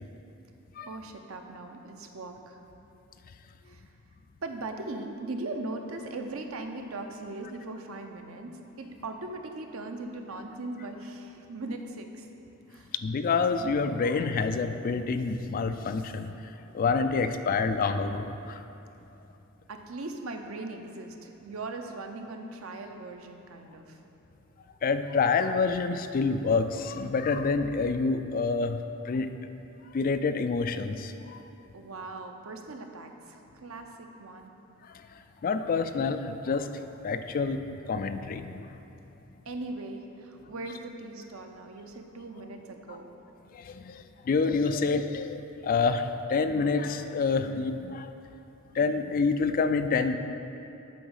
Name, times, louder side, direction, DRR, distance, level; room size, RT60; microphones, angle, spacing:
voice 1, 0.9-2.6 3.6-3.8 4.4-12.3 12.7-12.9 19.7-24.0 31.7-34.5 39.5-43.1, right 2 dB, 85° right, 4 dB, 0.7 m, -39 dB
voice 2, 13.0-16.3 16.7-18.6 24.8-28.8 29.1-29.3 29.9-31.4 35.4-36.7 37.0-37.6 37.9-38.6 43.5-48.1 48.8-50.2, left 4 dB, 40° left, 9 dB, 0.3 m, -27 dB
8.5 x 3.9 x 6.4 m, 2.9 s
head